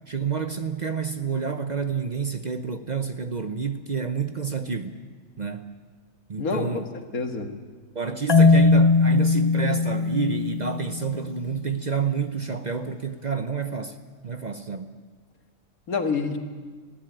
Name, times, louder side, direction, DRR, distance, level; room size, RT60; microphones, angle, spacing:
voice 1, 0.1-5.0 5.4-5.7 6.3-6.9 7.9-14.0 14.2-14.9, right 5 dB, 40° right, 0.7 m, -29 dB
voice 2, 6.4-7.5 15.9-16.4, left 4 dB, 90° left, 2.2 m, -28 dB
Marimba xylophone, 8.3-11.3, left 3 dB, 40° left, 0.3 m, -19 dB
19.0 x 16.5 x 9.0 m
omnidirectional pair, 1.5 m